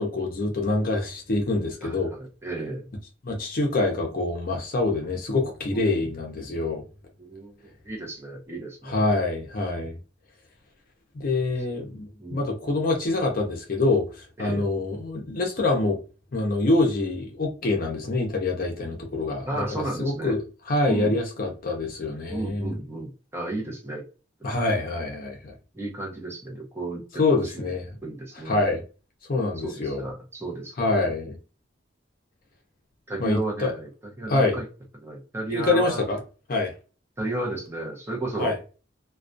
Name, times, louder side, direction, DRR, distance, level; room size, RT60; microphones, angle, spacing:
voice 1, 0.0-2.1 3.2-6.8 8.8-9.9 11.1-14.1 14.4-16.0 16.3-20.4 20.7-22.8 24.4-25.5 27.2-27.9 28.5-28.8 29.3-30.1 30.8-31.3 33.2-33.7 34.3-34.6 35.5-36.2 36.5-36.7 38.4-38.5, left 2 dB, 50° left, 0.6 m, -25 dB
voice 2, 1.8-2.9 5.7-6.1 7.2-7.5 7.8-9.1 12.2-12.5 14.4-14.6 19.5-20.4 20.9-21.2 22.3-24.0 24.4-24.5 25.7-27.0 27.3-27.7 28.0-28.6 29.6-31.0 33.1-33.9 34.2-34.6 35.0-36.0 37.2-38.6, right 2 dB, 15° right, 0.7 m, -33 dB
2.3 x 2.2 x 2.5 m
head